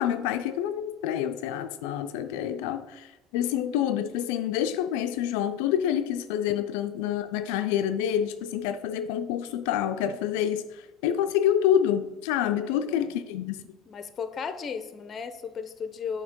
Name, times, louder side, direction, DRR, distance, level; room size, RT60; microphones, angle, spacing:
voice 1, 0.0-13.6, left 10 dB, 85° left, 0.3 m, -27 dB
voice 2, 12.6-13.1 13.9-16.2, left 6 dB, 35° left, 0.5 m, -36 dB
7.9 x 2.8 x 5.1 m
cardioid pair, 120°, 0 cm